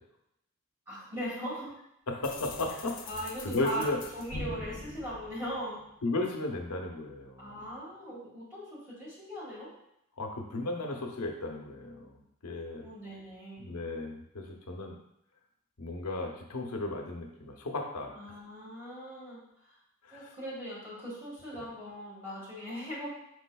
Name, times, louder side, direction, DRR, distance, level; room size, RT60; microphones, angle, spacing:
voice 1, 0.9-1.8 3.1-3.9 4.1-5.8 7.4-9.7 12.8-13.6 18.1-19.8 20.1-23.1, equal, 10° right, -7 dB, 1.6 m, -39 dB
voice 2, 2.1-3.1 3.4-4.0 6.0-7.7 10.2-12.9 13.6-14.9 15.8-18.1 20.0-20.3, left 2 dB, 85° left, 2 dB, 0.7 m, -35 dB
sound 1, 2.2-6.1, left 2 dB, 40° left, 0.5 m, -43 dB
5.0 x 4.1 x 2.3 m, 0.80 s
head